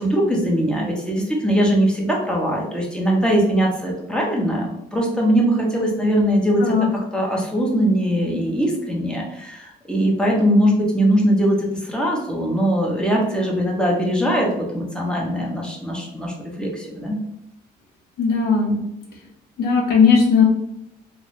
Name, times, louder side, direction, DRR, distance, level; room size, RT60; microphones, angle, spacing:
voice 1, 0.0-6.7 7.1-17.2, equal, 5° left, -1 dB, 0.9 m, -21 dB
voice 2, 18.2-18.8 19.6-20.4, left 5 dB, 70° left, -1 dB, 1.1 m, -17 dB
3.0 x 2.7 x 3.1 m, 0.82 s
cardioid pair, 110°, 17 cm